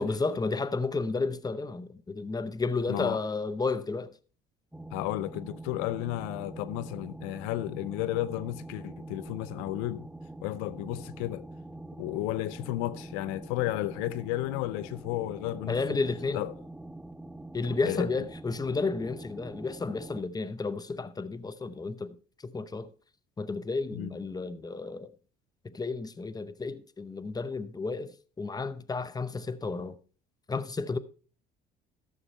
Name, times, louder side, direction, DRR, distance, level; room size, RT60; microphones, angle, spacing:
voice 1, 0.0-4.1 15.7-16.4 17.5-22.2 22.4-22.9 23.4-25.1 25.6-30.0 30.5-31.0, left 3 dB, 20° left, 0.8 m, -32 dB
voice 2, 2.9-3.2 4.9-10.1 10.4-11.5 12.0-16.0 16.3-16.5 17.8-18.1 23.9-24.2, left 16 dB, 80° left, 0.5 m, -33 dB
sound 1, 4.7-20.2, right 2 dB, 5° right, 0.5 m, -44 dB
13.0 x 6.8 x 4.2 m
hypercardioid pair, 65°, 21 cm